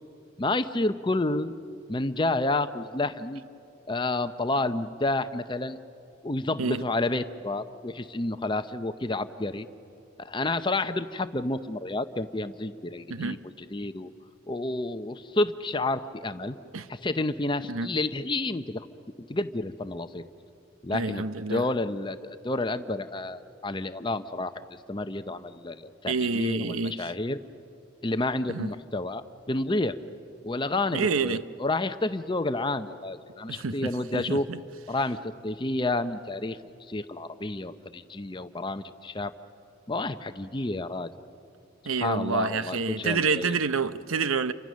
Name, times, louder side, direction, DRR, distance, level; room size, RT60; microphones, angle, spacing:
voice 1, 0.4-1.6 1.9-3.4 3.9-5.8 6.2-9.7 10.2-13.4 13.7-14.1 14.5-16.6 16.9-18.9 19.3-20.2 20.8-21.2 21.5-24.6 24.9-27.4 28.0-30.0 30.4-34.5 34.9-35.2 35.4-36.6 36.9-39.3 39.9-41.1 42.0-43.6, left 2 dB, 20° left, 0.7 m, -30 dB
voice 2, 13.1-13.4 16.7-16.9 17.7-17.9 20.9-21.7 26.1-27.1 28.5-28.7 30.9-31.4 33.5-34.6 41.8-44.5, right 4 dB, 85° right, 0.7 m, -28 dB
29.5 x 24.5 x 6.4 m
head